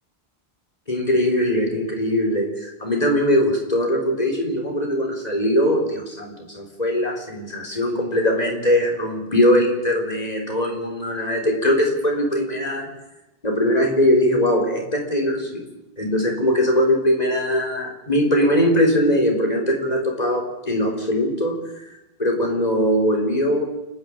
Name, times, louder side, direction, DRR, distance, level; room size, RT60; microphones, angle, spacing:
voice 1, 0.9-13.0 13.4-15.6 16.0-21.7 22.2-23.6, equal, 40° left, 1 dB, 4.1 m, -21 dB
28.5 x 10.5 x 8.8 m, 0.97 s
omnidirectional pair, 1.0 m